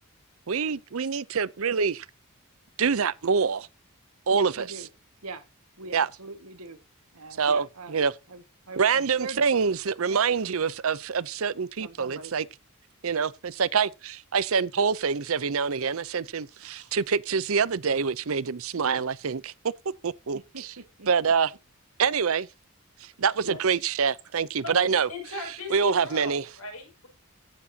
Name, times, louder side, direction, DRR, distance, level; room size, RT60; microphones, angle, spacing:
voice 1, 0.5-2.1 2.8-3.7 4.3-4.5 5.9-6.1 7.4-8.1 8.8-12.4 13.0-19.5 20.0-20.7 21.1-21.5 22.0-22.5 23.0-25.1 25.7-26.4, right 6 dB, 65° right, 0.6 m, -26 dB
voice 2, 4.3-4.9 5.2-5.4 5.8-6.8 7.1-8.0 8.3-9.4 10.1-10.2 11.8-12.3 16.5-17.0 18.9-19.0 20.3-21.1 23.4-23.8, right 3 dB, 90° right, 1.8 m, -41 dB
voice 3, 24.6-27.1, left 3 dB, 80° left, 6.2 m, -38 dB
15.5 x 7.3 x 2.8 m
head